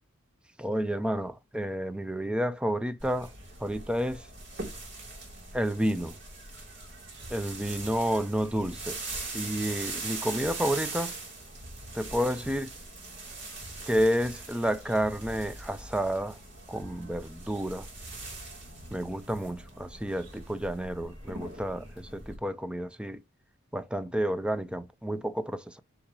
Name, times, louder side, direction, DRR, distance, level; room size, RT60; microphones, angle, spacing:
voice 1, 0.6-3.3 3.6-4.2 5.5-6.1 7.3-9.0 9.3-11.1 11.9-12.7 13.9-16.4 16.7-17.9 18.9-23.2 23.7-25.8, equal, 5° right, 0.5 m, -30 dB
sound 1, 3.0-22.4, right 2 dB, 60° right, 3.1 m, -41 dB
8.7 x 4.7 x 2.9 m
head